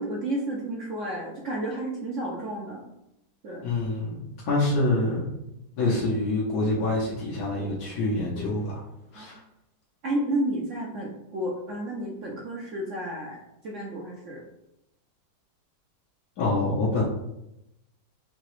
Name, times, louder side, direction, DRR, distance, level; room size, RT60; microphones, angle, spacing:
voice 1, 0.0-2.8 3.4-3.7 8.3-8.5 9.2-9.3 10.0-14.4, right 1 dB, 60° right, -2 dB, 0.8 m, -31 dB
voice 2, 3.6-5.3 5.8-8.8 9.1-9.4 16.4-17.0, left 2 dB, 65° left, -7 dB, 1.3 m, -26 dB
4.8 x 2.8 x 3.1 m, 0.87 s
omnidirectional pair, 1.8 m